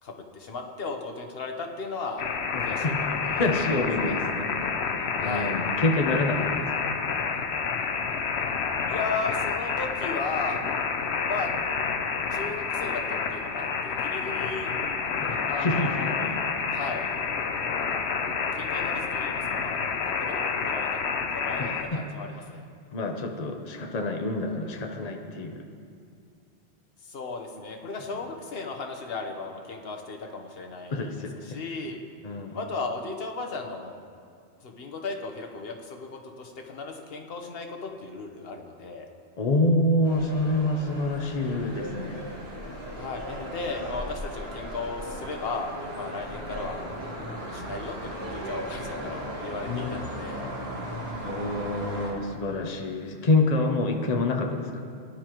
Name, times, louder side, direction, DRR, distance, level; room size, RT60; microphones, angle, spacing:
voice 1, 0.0-2.2 2.6-3.3 3.6-3.7 4.0-4.1 5.2-5.6 8.9-10.6 11.3-11.5 12.3-14.7 15.5-16.1 16.7-17.1 18.5-19.8 20.0-20.9 21.3-22.6 27.0-31.1 31.4-32.1 32.5-34.0 34.6-39.1 42.9-46.8 47.4-50.5, left 3 dB, 65° left, 3 dB, 1.2 m, -35 dB
sound 1, 2.2-21.8, left 5 dB, 85° left, 1.0 m, -29 dB
voice 2, 2.5-4.7 5.2-6.9 15.2-15.9 16.2-16.4 21.6-22.0 22.9-25.6 30.9-31.4 32.2-32.6 39.4-42.2 49.6-50.5 51.2-54.8, left 2 dB, 40° left, 3 dB, 0.9 m, -27 dB
sound 2, 40.0-52.1, right 1 dB, 70° right, 2.0 m, -37 dB
17.5 x 10.5 x 3.0 m, 2.3 s
omnidirectional pair, 1.1 m